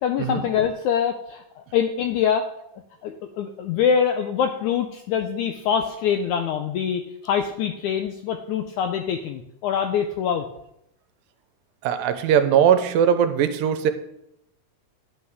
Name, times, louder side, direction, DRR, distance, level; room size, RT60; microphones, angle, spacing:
voice 1, 0.0-2.5 3.0-10.5, left 8 dB, 85° left, 6 dB, 1.7 m, -24 dB
voice 2, 11.8-13.9, right 8 dB, 85° right, 10 dB, 2.3 m, -20 dB
11.0 x 8.7 x 3.5 m, 0.78 s
omnidirectional pair, 4.1 m